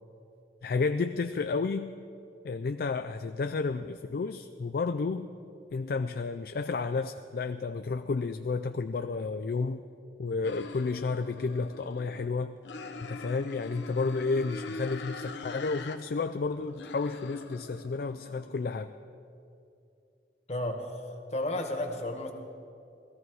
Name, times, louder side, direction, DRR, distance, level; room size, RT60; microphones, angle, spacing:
voice 1, 0.6-1.9 2.4-5.3 5.7-9.8 10.2-12.5 13.0-18.9, left 4 dB, 55° left, 9 dB, 0.4 m, -31 dB
sound 1, 10.4-12.3 12.6-16.0 16.3-18.9, left 3 dB, 90° left, 0.9 m, -43 dB
voice 2, 20.5-21.0 21.3-22.3, left 1 dB, 40° left, 3 dB, 1.4 m, -32 dB
18.5 x 14.0 x 4.7 m, 2.6 s
head